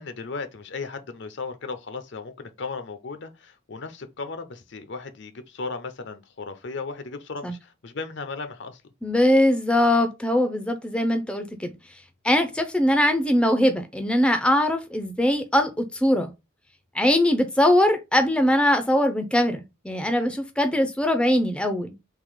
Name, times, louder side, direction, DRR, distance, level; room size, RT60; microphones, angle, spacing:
voice 1, 0.0-8.8, left 4 dB, 60° left, 0.7 m, -36 dB
voice 2, 9.0-11.8 12.2-16.3 16.9-22.0, left 1 dB, 5° left, 0.5 m, -21 dB
3.7 x 2.9 x 4.8 m
head